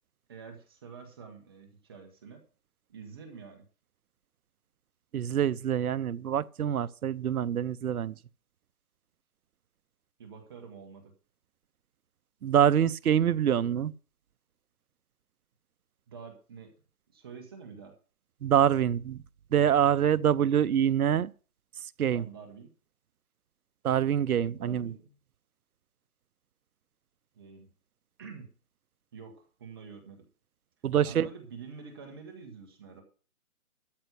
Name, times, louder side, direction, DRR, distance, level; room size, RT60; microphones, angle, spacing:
voice 1, 0.3-2.4 2.9-3.6 10.2-11.1 16.1-16.7 17.1-17.9 22.1-22.7 24.4-25.1 27.3-27.7 28.2-28.5 29.1-30.3 31.0-33.0, right 5 dB, 15° right, 1.1 m, -47 dB
voice 2, 5.1-8.2 12.4-13.9 18.4-19.2 19.5-21.3 21.8-22.3 23.8-24.9 30.8-31.3, right 9 dB, 70° right, 0.7 m, -25 dB
13.0 x 5.3 x 8.0 m
hypercardioid pair, 165°, 46 cm